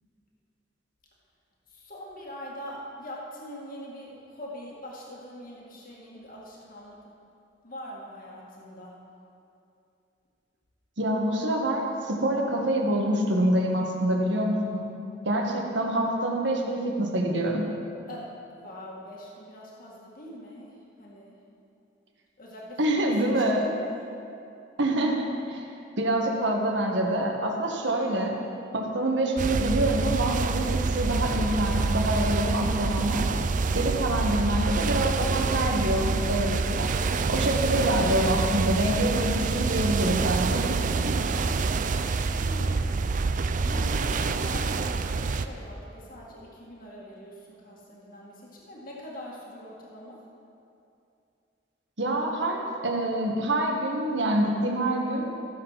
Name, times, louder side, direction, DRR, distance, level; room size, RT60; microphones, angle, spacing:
voice 1, 1.7-7.0 7.6-8.9 18.1-21.4 22.4-23.8 41.0-43.0 43.6-50.2, left 1 dB, 50° left, -4 dB, 2.0 m, -43 dB
voice 2, 11.0-14.9 15.2-17.7 22.8-23.6 24.8-25.6 26.0-28.4 28.7-33.3 33.7-36.9 37.3-41.1 52.0-55.3, right 1 dB, 70° right, 1 dB, 1.5 m, -26 dB
sound 1, 29.4-45.5, right 4 dB, 45° right, 0.4 m, -27 dB
14.5 x 7.1 x 5.8 m, 2.6 s
head